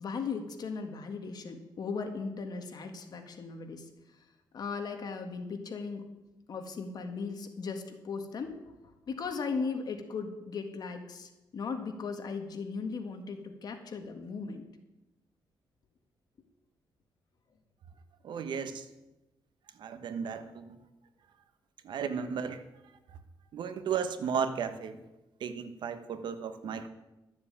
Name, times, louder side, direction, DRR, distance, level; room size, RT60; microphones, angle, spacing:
voice 1, 0.0-3.9 4.5-6.0 6.5-8.7 9.1-14.6, left 5 dB, 55° left, 6 dB, 1.7 m, -37 dB
voice 2, 18.2-18.7 19.8-20.7 21.8-22.6 23.5-25.0 25.4-26.9, right 7 dB, 65° right, 10 dB, 1.2 m, -34 dB
12.5 x 7.6 x 8.6 m, 1.0 s
cardioid pair, 125°, 8 cm